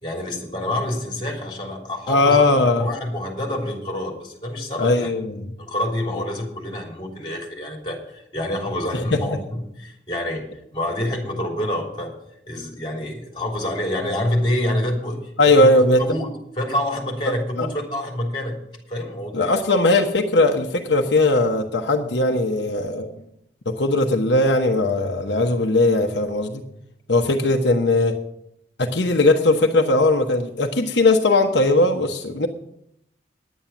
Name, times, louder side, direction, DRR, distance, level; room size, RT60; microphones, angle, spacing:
voice 1, 0.0-5.1 5.6-10.4 10.7-12.1 12.5-15.2 15.4-18.6 18.9-19.6, left 1 dB, 30° left, 0 dB, 3.4 m, -27 dB
voice 2, 2.1-2.9 4.8-5.5 6.1-6.2 8.9-9.2 15.4-16.0 17.6-17.7 19.3-23.1 23.7-26.6 27.1-28.2 28.8-32.5, left 2 dB, 80° left, 3 dB, 1.0 m, -19 dB
10.5 x 9.0 x 7.1 m, 0.75 s
head